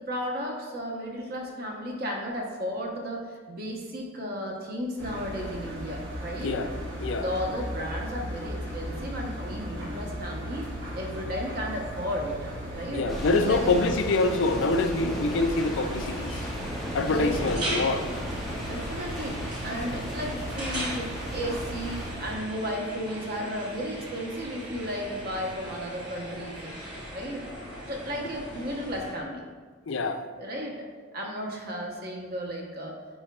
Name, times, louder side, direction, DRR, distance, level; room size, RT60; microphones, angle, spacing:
voice 1, 0.0-6.6 7.2-10.6 10.9-12.4 12.7-13.1 13.4-14.0 17.0-17.4 18.6-26.7 27.1-27.4 27.8-29.4 30.4-30.7 31.1-32.9, equal, 50° right, 0 dB, 1.0 m, -34 dB
Engine, 5.0-22.4, equal, 70° right, 1.3 m, -37 dB
voice 2, 12.9-16.5 16.9-18.1 29.9-30.3, left 3 dB, 65° left, 8 dB, 0.4 m, -25 dB
sound 1, 13.1-22.1, equal, ahead, 0.9 m, -36 dB
sound 2, 15.3-29.1, equal, 20° right, 1.4 m, -39 dB
8.7 x 4.6 x 2.3 m, 1.5 s
head